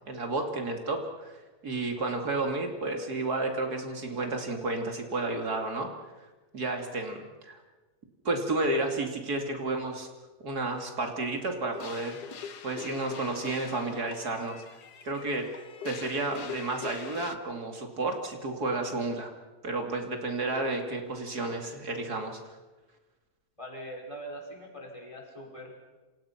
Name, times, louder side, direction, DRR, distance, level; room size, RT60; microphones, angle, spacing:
voice 1, 0.1-5.9 6.5-7.6 8.2-10.1 10.4-12.2 12.6-14.6 15.0-15.5 15.8-19.3 19.6-22.6, right 2 dB, 75° right, 4 dB, 3.2 m, -31 dB
sound 1, 11.7-17.4, left 6 dB, 85° left, 1.8 m, -43 dB
voice 2, 23.6-25.8, equal, 20° left, 1 dB, 5.6 m, -42 dB
28.0 x 27.0 x 5.9 m, 1.2 s
omnidirectional pair, 1.7 m